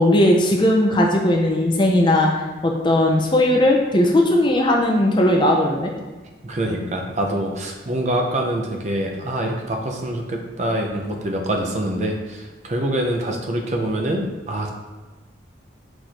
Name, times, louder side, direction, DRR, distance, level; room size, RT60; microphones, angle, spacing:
voice 1, 0.0-2.3 2.6-5.9, left 1 dB, 25° left, 0 dB, 0.4 m, -17 dB
voice 2, 6.4-14.7, right 1 dB, 40° right, 2 dB, 0.5 m, -25 dB
4.5 x 2.5 x 4.2 m, 1.2 s
head